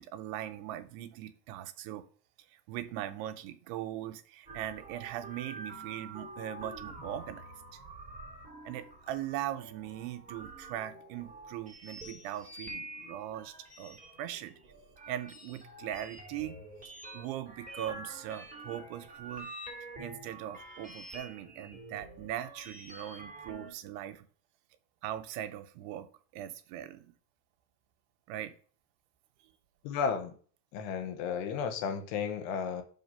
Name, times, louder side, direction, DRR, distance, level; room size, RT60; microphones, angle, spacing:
voice 1, 0.0-2.0 2.5-7.4 7.7-7.8 8.7-14.5 15.1-16.6 17.1-19.5 20.0-24.3 25.0-26.1 26.3-27.1 28.3-28.5, right 12 dB, 85° right, 2.7 m, -40 dB
sound 1, 4.5-23.7, right 2 dB, 5° right, 1.4 m, -47 dB
voice 2, 29.8-30.3 30.7-32.8, left 6 dB, 85° left, 2.9 m, -33 dB
5.7 x 5.6 x 5.5 m
omnidirectional pair, 4.7 m